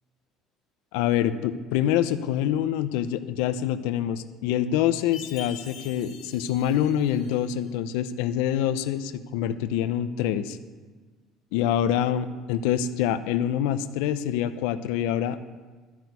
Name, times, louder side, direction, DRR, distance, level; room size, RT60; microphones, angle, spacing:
voice 1, 0.9-10.6 11.5-15.4, left 10 dB, 90° left, 12 dB, 0.6 m, -26 dB
Chime, 5.1-7.6, left 7 dB, 70° left, 1.6 m, -45 dB
13.0 x 6.1 x 9.4 m, 1.4 s
cardioid pair, 115°, 0 cm